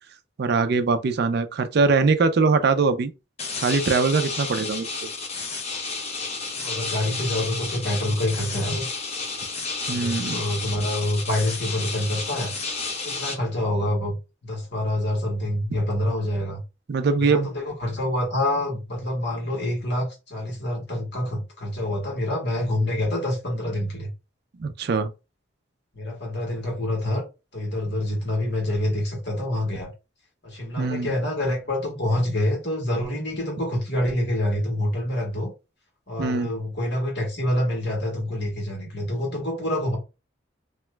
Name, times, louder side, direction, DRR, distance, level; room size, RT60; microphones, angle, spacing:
voice 1, 0.4-3.1 3.6-4.9 9.9-10.4 16.9-17.5 24.6-25.1 30.8-31.1 36.2-36.5, right 4 dB, 55° right, 0.4 m, -22 dB
sound 1, 3.4-13.3, left 4 dB, 35° left, 0.8 m, -31 dB
voice 2, 6.5-8.9 9.9-12.5 13.0-14.2 14.4-16.6 17.2-24.1 25.9-27.2 27.5-29.9 30.4-35.5 36.1-40.0, left 1 dB, 60° left, 1.5 m, -26 dB
2.9 x 2.2 x 3.2 m
head